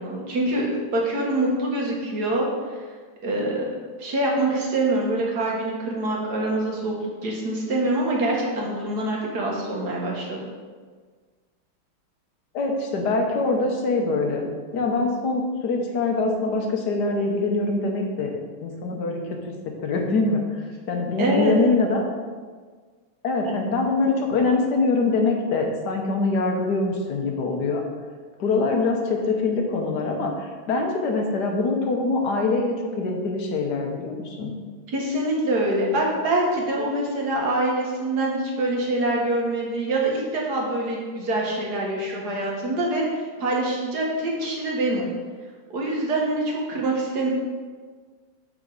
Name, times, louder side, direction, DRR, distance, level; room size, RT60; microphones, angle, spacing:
voice 1, 0.0-2.8 3.2-3.6 4.0-7.0 7.2-10.5 21.2-21.5 34.9-45.1 45.7-47.3, right 1 dB, 50° right, -2 dB, 1.9 m, -25 dB
voice 2, 12.5-18.3 18.6-19.5 19.8-20.4 20.9-22.0 23.2-27.9 28.4-34.5, left 3 dB, 60° left, 2 dB, 1.4 m, -24 dB
7.4 x 6.4 x 4.0 m, 1.5 s
omnidirectional pair, 2.3 m